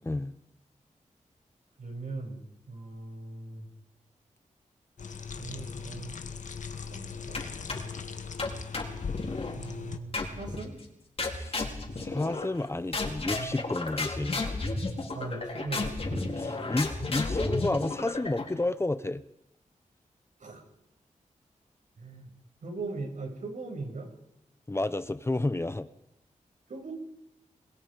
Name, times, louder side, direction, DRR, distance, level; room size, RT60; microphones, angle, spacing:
voice 1, 1.8-2.4 2.7-3.7 5.4-6.2 6.9-7.5 9.5-10.8 15.1-16.7 17.0-17.1 17.6-17.7 20.4-20.6 22.0-22.3 22.6-24.1 26.7-26.9, right 3 dB, 70° right, 2 dB, 7.5 m, -39 dB
sound 1, 5.0-10.0, left 5 dB, 70° left, 1.8 m, -39 dB
sound 2, 7.3-8.0 8.4-9.6 10.1-10.7 11.2-12.6 12.9-18.6, left 3 dB, 45° left, 4.6 m, -33 dB
voice 2, 11.3-14.6 16.1-19.2 24.7-25.9, left 2 dB, 20° left, 13 dB, 0.9 m, -31 dB
29.5 x 21.5 x 5.3 m, 0.84 s
wide cardioid pair, 100°, 13 cm